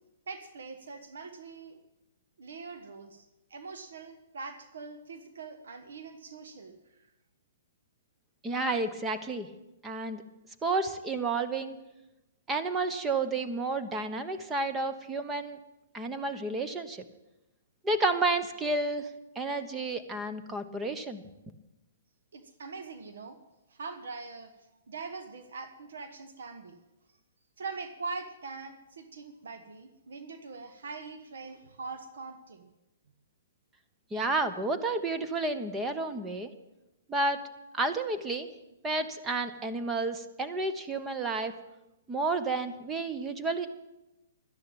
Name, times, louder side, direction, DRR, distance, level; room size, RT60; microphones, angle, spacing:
voice 1, 0.3-1.8 2.4-6.8 22.3-23.4 23.7-24.5 24.9-26.8 27.6-32.7, right 4 dB, 80° right, 10 dB, 1.3 m, -42 dB
voice 2, 8.4-9.5 9.8-10.2 10.6-11.8 12.5-15.6 15.9-17.0 17.8-19.1 19.3-21.2 34.1-36.5 37.1-37.4 37.7-38.5 38.8-41.5 42.1-43.7, right 3 dB, 15° right, 9 dB, 1.0 m, -31 dB
12.0 x 10.5 x 8.9 m, 0.96 s
hypercardioid pair, 145°, 0 cm